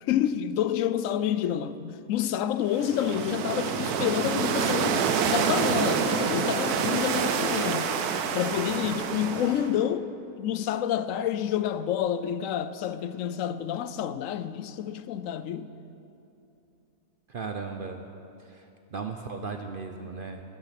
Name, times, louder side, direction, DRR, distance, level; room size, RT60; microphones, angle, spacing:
voice 1, 0.0-7.9 8.3-10.1 10.4-15.7, left 10 dB, 70° left, 0.8 m, -28 dB
sound 1, 2.7-9.8, right 6 dB, 75° right, 1.3 m, -27 dB
voice 2, 17.3-18.0 18.5-18.6 18.9-20.4, right 5 dB, 60° right, 0.5 m, -36 dB
13.5 x 12.0 x 5.9 m
omnidirectional pair, 1.6 m